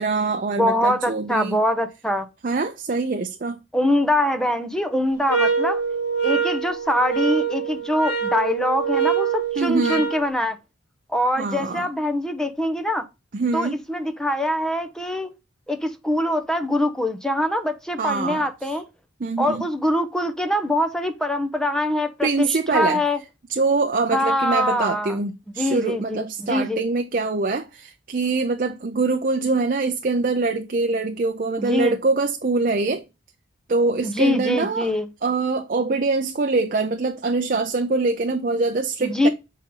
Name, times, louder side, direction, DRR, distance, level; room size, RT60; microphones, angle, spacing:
voice 1, 0.0-1.6 2.4-3.6 9.6-10.1 11.4-11.9 13.3-13.8 18.0-18.5 19.2-19.6 22.2-23.0 23.5-33.0 33.7-34.9 35.2-39.3, right 3 dB, 45° right, 0.5 m, -24 dB
voice 2, 0.6-2.3 3.7-5.8 6.2-10.6 11.1-13.0 13.5-15.3 15.7-18.8 19.4-23.2 24.1-25.2 25.6-26.8 31.6-32.0 34.0-35.1 39.0-39.3, left 1 dB, 5° left, 0.8 m, -23 dB
sound 1, 5.3-10.2, right 6 dB, 55° left, 1.5 m, -24 dB
7.2 x 4.2 x 3.8 m
head